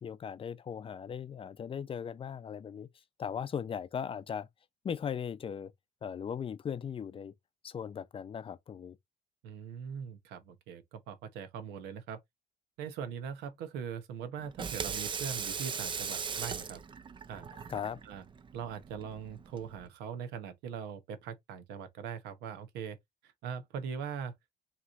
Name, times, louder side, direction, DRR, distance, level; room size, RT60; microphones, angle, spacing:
voice 1, 0.0-2.9 3.2-4.5 4.8-5.7 6.0-7.3 7.6-9.0 17.7-18.0, left 7 dB, 30° left, 0.5 m, -38 dB
voice 2, 9.4-12.2 12.8-16.8 17.3-17.5 18.0-18.2 18.5-23.0 23.2-24.3, right 7 dB, 90° right, 0.9 m, -41 dB
Water tap faucet / Sink (filling or washing), 14.4-19.9, right 6 dB, 30° right, 0.5 m, -39 dB
5.6 x 3.1 x 2.5 m
cardioid pair, 110°, 17 cm